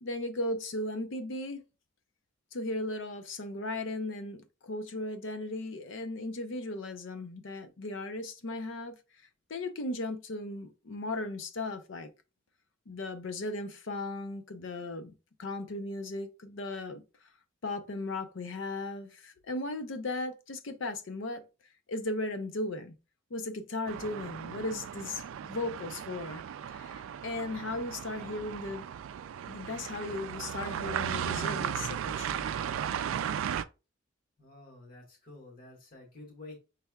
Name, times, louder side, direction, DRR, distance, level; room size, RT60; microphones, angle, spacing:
voice 1, 0.0-1.6 2.5-9.0 9.5-12.1 12.9-15.1 15.4-17.0 17.6-21.5 21.9-23.0 23.3-28.9 29.5-32.5, left 2 dB, 70° left, 0.6 m, -36 dB
sound 1, 23.9-33.6, right 8 dB, 85° right, 0.3 m, -36 dB
voice 2, 34.4-36.6, left 2 dB, 45° left, 1.5 m, -50 dB
5.5 x 3.3 x 2.3 m
head